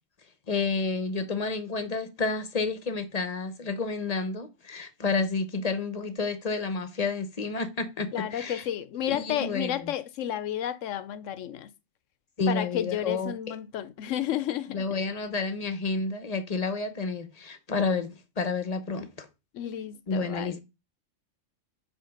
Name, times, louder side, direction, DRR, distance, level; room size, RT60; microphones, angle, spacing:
voice 1, 0.5-8.6 9.1-9.8 12.4-13.6 14.7-19.3 20.1-20.6, left 4 dB, 40° left, 0.7 m, -30 dB
voice 2, 8.1-11.7 12.5-14.9 19.5-20.6, left 11 dB, 70° left, 0.9 m, -32 dB
5.2 x 4.6 x 5.7 m
omnidirectional pair, 1.4 m